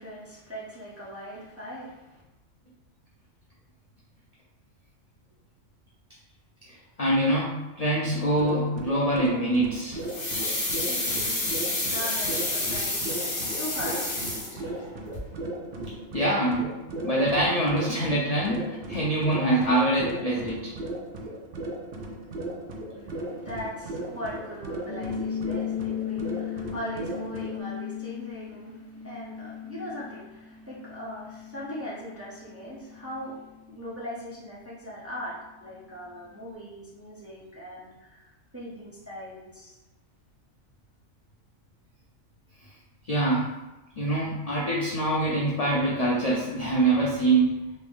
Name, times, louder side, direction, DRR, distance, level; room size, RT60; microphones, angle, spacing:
voice 1, 0.0-2.2 10.1-14.5 22.9-33.4 33.7-39.8, equal, 15° right, -8 dB, 0.6 m, -40 dB
voice 2, 7.0-10.0 16.1-16.7 17.0-20.7 43.1-43.4 44.0-47.5, right 1 dB, 55° left, -5 dB, 0.4 m, -24 dB
sound 1, 8.1-27.6, right 2 dB, 60° right, 0.5 m, -37 dB
sound 2, 10.1-14.9 15.1-15.2, left 2 dB, 40° left, 1.0 m, -29 dB
sound 3, 24.9-35.8, left 9 dB, 90° left, 1.0 m, -37 dB
3.1 x 2.6 x 3.5 m, 1.0 s
omnidirectional pair, 1.4 m